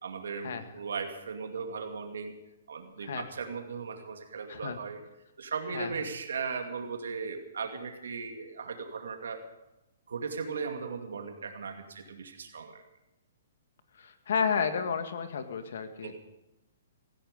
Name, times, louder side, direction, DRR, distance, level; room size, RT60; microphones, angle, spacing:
voice 1, 0.0-2.4 2.7-5.0 5.4-9.4 10.1-12.8 16.0-16.1, right 5 dB, 90° right, 4 dB, 2.3 m, -37 dB
voice 2, 14.0-16.1, left 6 dB, 70° left, 8 dB, 2.0 m, -31 dB
17.0 x 15.5 x 5.3 m, 0.94 s
hypercardioid pair, 155°, 0 cm